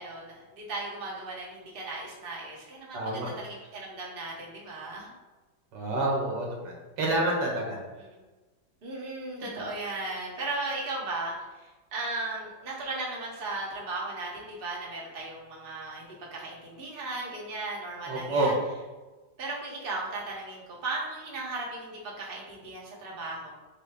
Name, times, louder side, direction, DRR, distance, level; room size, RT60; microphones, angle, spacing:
voice 1, 0.0-5.1 8.1-8.2 8.8-18.5 19.4-23.5, right 2 dB, 40° right, -3 dB, 0.9 m, -36 dB
voice 2, 2.9-3.3 5.7-7.8 18.1-18.6, right 1 dB, 80° right, -2 dB, 1.7 m, -28 dB
6.4 x 2.2 x 3.4 m, 1.2 s
omnidirectional pair, 2.0 m